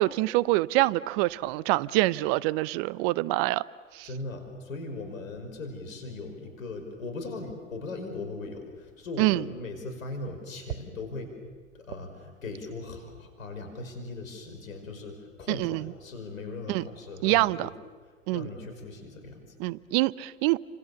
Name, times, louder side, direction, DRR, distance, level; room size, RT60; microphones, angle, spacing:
voice 1, 0.0-3.6 3.9-4.1 9.2-9.4 15.5-15.8 16.7-16.8 17.2-17.7 18.3-18.5 19.6-20.6, right 19 dB, 45° right, 0.8 m, -25 dB
voice 2, 4.0-11.3 11.7-17.7 18.3-19.5, left 3 dB, 80° left, 5.6 m, -39 dB
30.0 x 26.0 x 7.0 m
hypercardioid pair, 100°, 39 cm